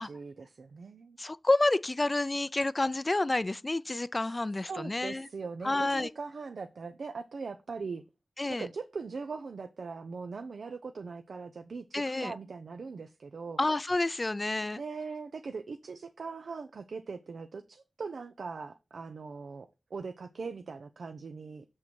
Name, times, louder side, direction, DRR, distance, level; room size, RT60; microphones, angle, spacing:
voice 1, 0.0-1.2 4.2-4.4 4.7-8.0 8.5-13.6 14.6-21.7, right 4 dB, 90° right, 0.6 m, -41 dB
voice 2, 1.2-5.3 5.6-6.1 8.4-8.7 11.9-12.3 13.6-14.8, left 2 dB, 30° left, 0.4 m, -29 dB
7.2 x 6.4 x 4.6 m
wide cardioid pair, 85°, 0 cm